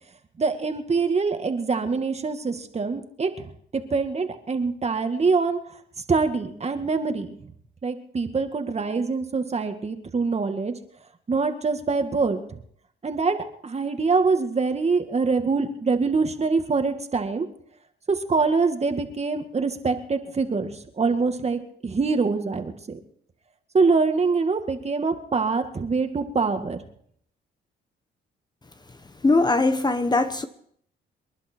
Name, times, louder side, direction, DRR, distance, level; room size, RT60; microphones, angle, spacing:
voice 1, 0.4-5.6 6.1-7.3 7.8-10.7 11.3-12.6 13.0-13.4 13.6-17.5 18.1-23.0 23.7-26.8, right 4 dB, 35° right, 2.0 m, -24 dB
voice 2, 29.2-30.5, left 3 dB, 20° left, 1.1 m, -20 dB
27.5 x 11.0 x 4.6 m
cardioid pair, 90°, 20 cm